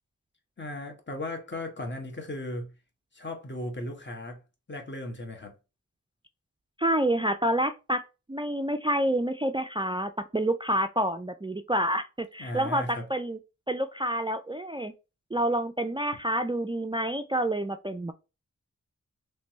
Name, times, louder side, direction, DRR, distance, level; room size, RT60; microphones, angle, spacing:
voice 1, 0.6-2.7 3.1-4.4 4.7-5.5 12.4-13.0, left 1 dB, 35° left, 1.2 m, -36 dB
voice 2, 6.8-8.0 8.3-13.4 13.7-14.9 15.3-18.1, right 1 dB, 15° right, 0.3 m, -28 dB
3.3 x 3.2 x 3.0 m
wide cardioid pair, 45°, 32 cm